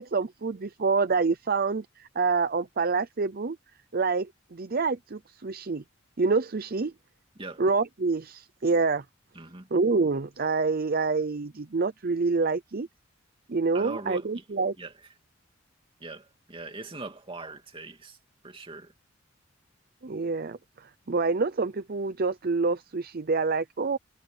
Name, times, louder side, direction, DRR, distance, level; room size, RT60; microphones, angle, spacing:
voice 1, 0.0-3.6 3.9-5.8 6.2-6.9 7.6-9.0 9.7-12.9 13.5-14.7 20.0-24.0, right 4 dB, 50° right, 0.6 m, -27 dB
voice 2, 9.3-9.7 13.7-14.4 14.8-14.9 16.0-18.2 18.4-18.9, right 3 dB, 25° right, 2.6 m, -41 dB
head